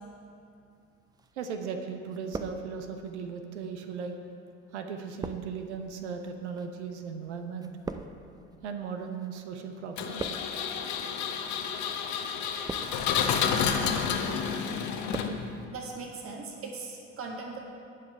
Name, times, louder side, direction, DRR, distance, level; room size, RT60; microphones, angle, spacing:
sound 1, 1.2-1.8 2.1-3.1 3.8-9.5 9.7-10.7 11.4-11.7 12.4-13.2 13.6-14.1 14.5-15.4 15.7-15.8, right 3 dB, 10° right, 0.5 m, -42 dB
voice 1, 1.3-4.1 4.7-7.7 8.6-10.5, right 6 dB, 70° right, 5 dB, 1.0 m, -37 dB
Engine, 10.0-15.6, left 7 dB, 50° left, 1.1 m, -30 dB
voice 2, 15.7-17.6, right 4 dB, 40° right, 0 dB, 1.8 m, -39 dB
17.0 x 5.9 x 4.7 m, 2.5 s
figure-of-eight pair, 60°, 36 cm